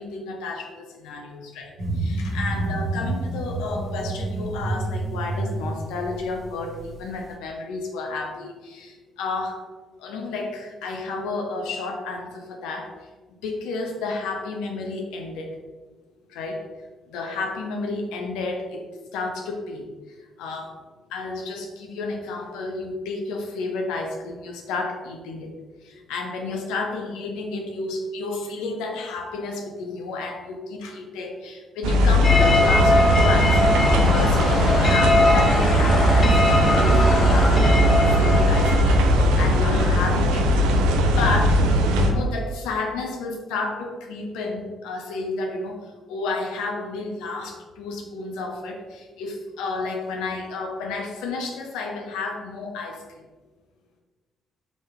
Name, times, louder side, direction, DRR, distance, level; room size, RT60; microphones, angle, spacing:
voice 1, 0.0-9.6 10.0-12.9 13.4-15.6 16.3-16.6 17.1-18.8 19.1-19.9 20.4-20.7 21.1-25.5 25.8-40.8 41.2-41.6 42.0-45.8 46.1-53.2, left 3 dB, 75° left, 2 dB, 0.7 m, -31 dB
sound 1, 1.8-7.3, right 2 dB, 45° right, 1.4 m, -29 dB
sound 2, 31.8-42.1, equal, 80° right, 0.4 m, -19 dB
sound 3, 32.2-39.3, left 2 dB, 40° left, 0.8 m, -21 dB
3.9 x 3.6 x 3.4 m, 1.3 s
hypercardioid pair, 45°, 0 cm